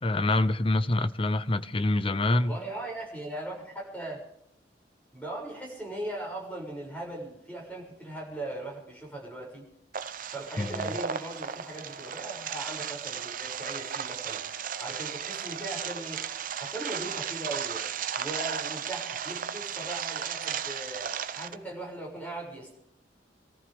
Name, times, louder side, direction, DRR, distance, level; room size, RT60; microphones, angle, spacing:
voice 1, 0.0-2.6 10.6-10.9, left 2 dB, 30° left, 0.7 m, -26 dB
voice 2, 2.3-4.2 5.1-9.6 10.3-14.4 14.8-16.2 16.6-17.9 18.2-22.8, right 1 dB, 10° left, 6.6 m, -39 dB
sound 1, 9.9-21.5, right 8 dB, 50° right, 0.7 m, -35 dB
27.0 x 14.5 x 3.5 m
head